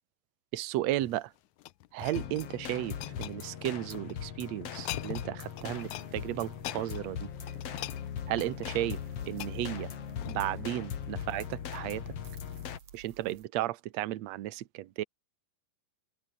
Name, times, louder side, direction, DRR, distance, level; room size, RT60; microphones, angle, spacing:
voice 1, 0.5-1.3 1.9-7.3 8.3-9.0 9.3-9.9 10.2-12.0 12.9-15.0, right 15 dB, 75° right, 1.6 m, -34 dB
sound 1, 0.9-4.1 4.6-5.3 5.6-6.1 6.4-10.7 11.2-11.4, left 16 dB, 90° left, 1.6 m, -43 dB
sound 2, 2.1-12.8, left 8 dB, 50° left, 2.4 m, -40 dB
sound 3, 5.4-13.5, right 8 dB, 50° right, 3.2 m, -56 dB
open air
omnidirectional pair, 4.3 m